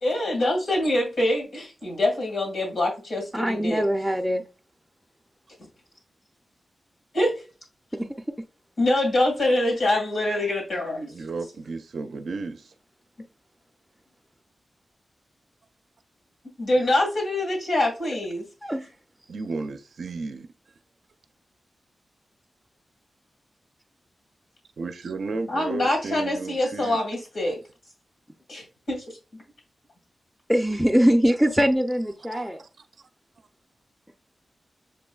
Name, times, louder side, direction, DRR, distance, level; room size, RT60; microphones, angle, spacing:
voice 1, 0.0-3.8 7.1-7.4 8.8-11.1 16.6-18.4 25.5-27.6 28.5-29.0, left 1 dB, 85° left, 1.9 m, -25 dB
voice 2, 3.3-4.4 7.9-8.1 18.6-18.9 30.5-32.6, equal, ahead, 0.5 m, -22 dB
voice 3, 11.1-12.7 19.3-20.5 24.8-27.0 32.3-32.8, right 4 dB, 75° right, 0.4 m, -34 dB
6.8 x 3.0 x 2.3 m
wide cardioid pair, 100°, 0 cm